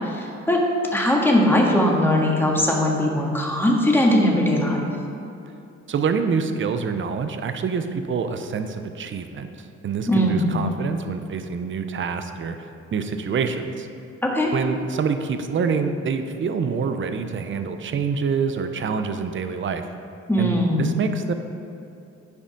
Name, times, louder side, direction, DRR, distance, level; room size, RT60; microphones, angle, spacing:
voice 1, 0.0-0.6 0.9-4.8 10.1-10.5 14.2-14.5 20.3-20.9, left 1 dB, 5° left, -1 dB, 1.6 m, -20 dB
voice 2, 5.9-9.5 9.8-13.9 14.5-19.9 20.4-21.3, right 5 dB, 40° right, 8 dB, 0.7 m, -26 dB
10.5 x 5.0 x 5.2 m, 2.7 s
cardioid pair, 90°, 30 cm